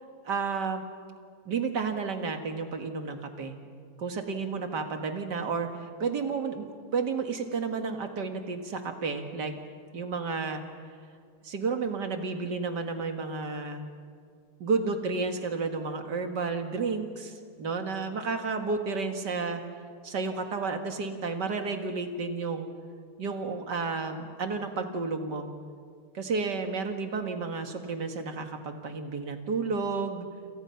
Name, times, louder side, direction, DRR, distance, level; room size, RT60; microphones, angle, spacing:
voice 1, 0.2-0.8 1.5-3.6 4.0-9.5 9.9-10.6 11.4-13.8 14.6-19.6 20.0-22.7 23.2-25.5 26.1-30.3, right 4 dB, 55° right, 5 dB, 2.4 m, -31 dB
28.5 x 27.5 x 5.8 m, 2.1 s
omnidirectional pair, 2.3 m